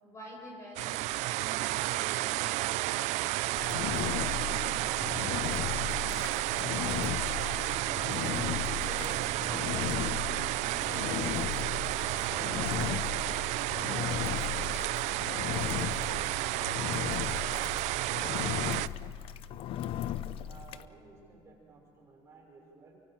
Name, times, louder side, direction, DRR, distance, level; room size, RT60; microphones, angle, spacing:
voice 1, 0.0-3.6 4.0-6.4 7.1-9.3 9.6-12.7, right 1 dB, 25° left, 0 dB, 5.3 m, -48 dB
sound 1, 0.8-18.9, right 18 dB, 80° right, 0.5 m, -32 dB
Engine, 3.6-20.9, left 11 dB, 50° left, 0.7 m, -36 dB
sound 2, 10.7-17.9, right 6 dB, 60° right, 4.6 m, -54 dB
voice 2, 20.4-23.0, right 3 dB, 25° right, -2 dB, 5.9 m, -55 dB
29.5 x 24.0 x 5.9 m, 2.5 s
cardioid pair, 175°, 12 cm